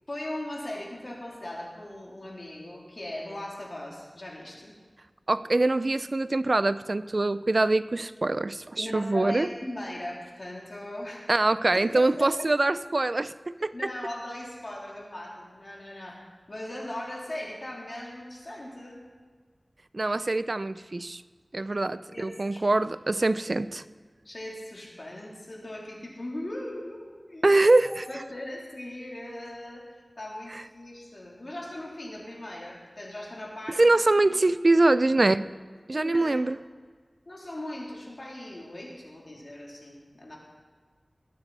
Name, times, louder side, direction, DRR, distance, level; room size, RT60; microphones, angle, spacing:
voice 1, 0.1-4.8 8.8-11.3 11.7-12.3 13.7-16.2 16.5-19.0 21.7-21.8 22.1-22.6 24.2-27.5 27.8-29.8 30.2-33.8 35.9-36.4 37.2-40.4, left 1 dB, 55° left, -3 dB, 3.3 m, -39 dB
voice 2, 5.3-9.5 11.3-13.3 13.6-13.7 19.9-21.2 21.5-23.8 27.4-27.9 33.8-35.5 35.9-36.6, right 2 dB, 60° right, 15 dB, 0.4 m, -23 dB
21.5 x 9.3 x 4.2 m, 1.5 s
wide cardioid pair, 50°, 0 cm